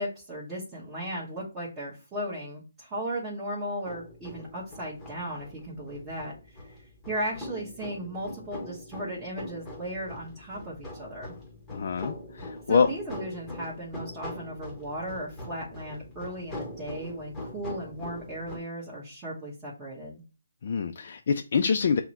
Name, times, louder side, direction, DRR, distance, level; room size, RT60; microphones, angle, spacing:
voice 1, 0.0-6.6 7.1-11.3 12.7-20.2, right 1 dB, 15° right, -8 dB, 1.2 m, -36 dB
sound 1, 3.8-18.6, left 1 dB, 5° left, 1.1 m, -42 dB
voice 2, 11.7-12.9 20.6-22.0, left 6 dB, 55° left, 6 dB, 0.3 m, -25 dB
5.7 x 2.1 x 2.9 m, 0.33 s
hypercardioid pair, 150°, 0 cm